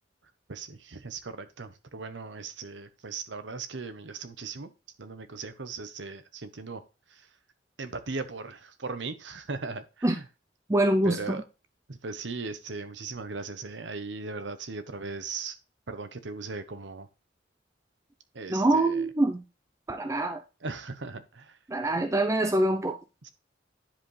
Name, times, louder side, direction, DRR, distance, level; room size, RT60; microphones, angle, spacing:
voice 1, 0.5-4.7 5.0-6.8 7.1-7.2 7.8-10.2 11.0-11.4 11.9-15.6 15.9-17.1 18.3-19.0 20.6-21.6 23.2-23.3, right 4 dB, 75° right, 1.0 m, -38 dB
voice 2, 10.7-11.4 18.5-19.4 19.9-20.4 21.7-23.0, right 1 dB, 15° right, 0.6 m, -25 dB
10.5 x 4.9 x 3.3 m
head